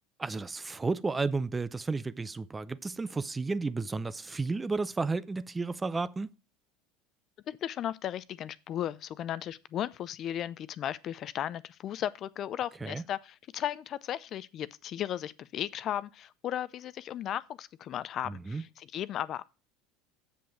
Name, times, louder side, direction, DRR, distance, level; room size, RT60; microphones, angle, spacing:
voice 1, 0.2-6.3 12.8-13.0 18.3-18.6, right 3 dB, 15° right, 0.4 m, -32 dB
voice 2, 7.5-19.4, left 11 dB, 45° left, 0.5 m, -35 dB
7.7 x 7.0 x 4.8 m
supercardioid pair, 100°, 0 cm